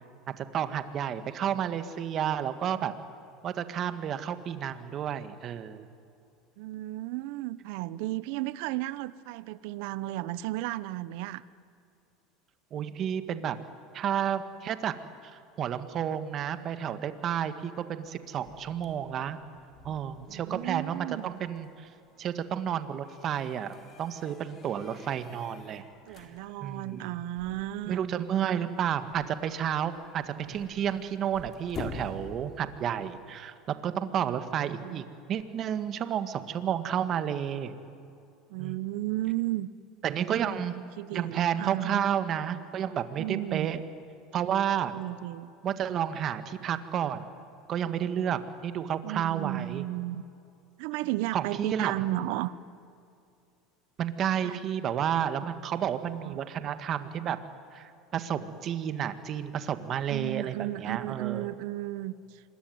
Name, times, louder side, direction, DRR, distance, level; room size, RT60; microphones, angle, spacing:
voice 1, 0.3-2.9 3.4-5.9 12.7-13.6 13.9-14.9 15.3-19.4 19.8-21.9 22.2-25.8 26.1-26.3 26.6-27.1 27.9-37.7 38.6-38.7 40.0-40.7 41.1-43.8 44.3-44.9 45.6-47.3 47.7-49.8 51.3-51.9 54.0-57.4 57.7-61.4, right 9 dB, 40° right, 11 dB, 1.8 m, -31 dB
voice 2, 6.6-11.4 20.3-21.3 26.1-28.0 34.2-34.4 34.7-35.0 38.5-39.7 40.3-40.6 41.0-42.0 43.2-43.7 44.9-45.5 49.0-50.2 50.8-52.5 54.4-54.6 55.6-55.9 56.2-56.4 60.1-62.4, right 16 dB, 70° right, 17 dB, 0.9 m, -34 dB
sound 1, 18.1-33.1, left 3 dB, 35° left, 3.9 m, -49 dB
26.5 x 21.5 x 9.5 m, 2.5 s
supercardioid pair, 115°, 0 cm